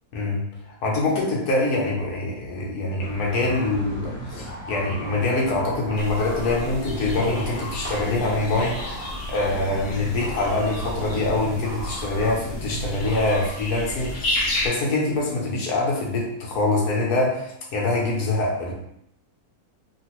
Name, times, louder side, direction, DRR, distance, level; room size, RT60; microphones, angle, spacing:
voice 1, 0.1-0.5 0.8-9.0 9.3-18.7, left 2 dB, 80° left, -3 dB, 1.3 m, -24 dB
sound 1, 3.0-11.1, right 1 dB, 15° right, 0.4 m, -41 dB
sound 2, 3.5-13.5, right 1 dB, 15° left, 0.7 m, -37 dB
sound 3, 6.0-14.7, left 1 dB, 65° left, 0.6 m, -32 dB
3.3 x 2.4 x 2.9 m, 0.76 s
omnidirectional pair, 1.6 m